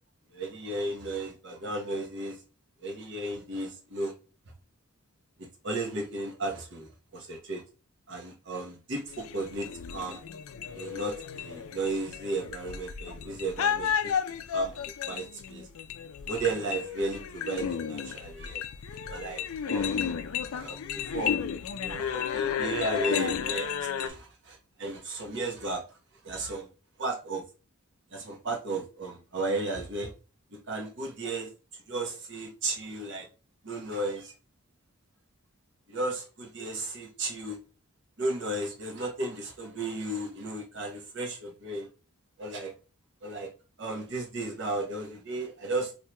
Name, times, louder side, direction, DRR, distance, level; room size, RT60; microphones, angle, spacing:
voice 1, 0.3-2.4 2.8-4.1 5.6-7.6 8.1-10.2 10.7-15.7 16.3-18.6 19.1-20.1 20.5-21.3 21.8-25.8 26.2-26.7 27.0-27.4 28.1-30.1 30.5-31.5 31.9-33.3 33.6-34.3 35.9-37.6 38.2-41.9 42.4-42.7 43.2-43.5 43.8-45.9, right 2 dB, 55° right, 1 dB, 0.9 m, -34 dB
sound 1, 9.1-24.1, left 7 dB, 75° left, 0.4 m, -32 dB
4.4 x 2.7 x 2.2 m, 0.33 s
head